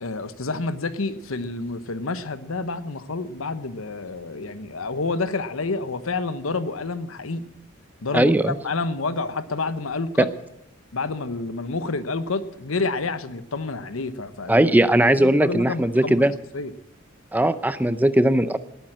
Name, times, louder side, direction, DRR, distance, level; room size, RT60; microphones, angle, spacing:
voice 1, 0.0-7.4 8.0-8.3 8.6-10.3 10.9-14.7 15.2-16.2 16.5-16.7, left 3 dB, 75° left, 13 dB, 1.0 m, -28 dB
voice 2, 8.1-8.5 10.2-10.3 14.5-16.3 17.3-18.6, right 1 dB, 10° right, 13 dB, 0.5 m, -19 dB
19.0 x 9.3 x 7.5 m, 0.81 s
head